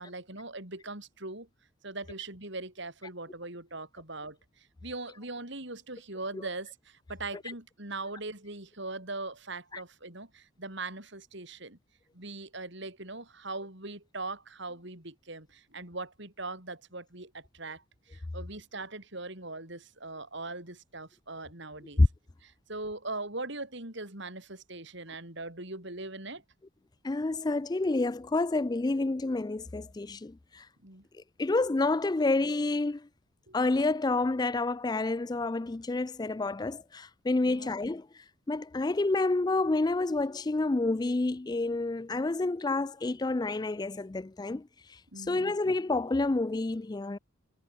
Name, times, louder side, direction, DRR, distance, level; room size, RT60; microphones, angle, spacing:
voice 1, 0.0-1.5 1.8-11.8 12.1-22.0 22.4-26.4 30.8-31.0 33.5-33.6 37.4-37.7 45.1-45.5, right 2 dB, 55° right, 4.9 m, -40 dB
voice 2, 27.0-30.7 31.4-33.1 33.5-38.1 38.5-47.2, left 2 dB, 20° left, 0.4 m, -29 dB
head